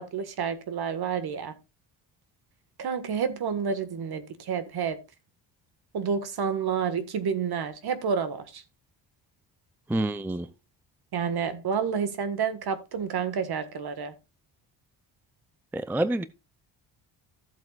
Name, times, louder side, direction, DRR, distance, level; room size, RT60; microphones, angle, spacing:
voice 1, 0.0-1.5 2.8-5.0 5.9-8.6 11.1-14.1, right 6 dB, 55° right, 1.7 m, -29 dB
voice 2, 9.9-10.5 15.7-16.2, right 1 dB, 5° right, 0.4 m, -27 dB
14.5 x 7.6 x 2.4 m
cardioid pair, 150°, 46 cm